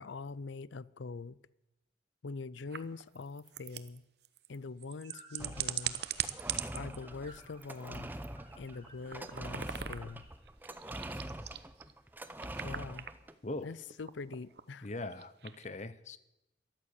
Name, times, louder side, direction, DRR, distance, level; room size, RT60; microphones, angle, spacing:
voice 1, 0.0-1.4 2.2-4.0 4.5-6.0 6.7-8.1 8.6-10.2 12.6-13.1 13.6-14.9, left 4 dB, 90° left, 0.6 m, -43 dB
sound 1, 2.7-7.0 7.4-8.0 8.2-8.3 8.6-10.2 10.5-11.9 12.4-13.1 13.6-15.6, right 10 dB, 65° right, 0.9 m, -41 dB
sound 2, 5.0-10.4, right 1 dB, 35° right, 4.4 m, -59 dB
sound 3, 5.4-13.3, right 1 dB, 10° right, 0.8 m, -44 dB
voice 2, 14.8-16.2, left 2 dB, 40° left, 0.9 m, -40 dB
14.0 x 12.5 x 8.2 m
head